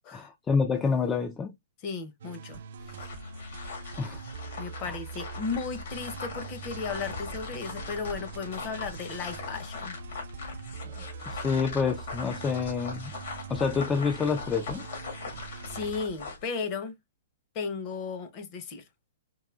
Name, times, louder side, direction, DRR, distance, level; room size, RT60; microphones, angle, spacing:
voice 1, 0.1-1.6 4.0-4.2 4.8-5.0 10.8-13.1 13.5-14.9, left 5 dB, 15° left, 0.3 m, -28 dB
voice 2, 1.8-2.6 2.9-3.1 4.6-10.0 15.4-16.9 17.5-18.8, left 5 dB, 30° left, 0.8 m, -35 dB
sound 1, 2.2-15.9, right 4 dB, 60° right, 0.5 m, -43 dB
sound 2, 2.8-16.5, left 3 dB, 65° left, 1.7 m, -40 dB
4.7 x 2.7 x 2.3 m
hypercardioid pair, 155°, 0 cm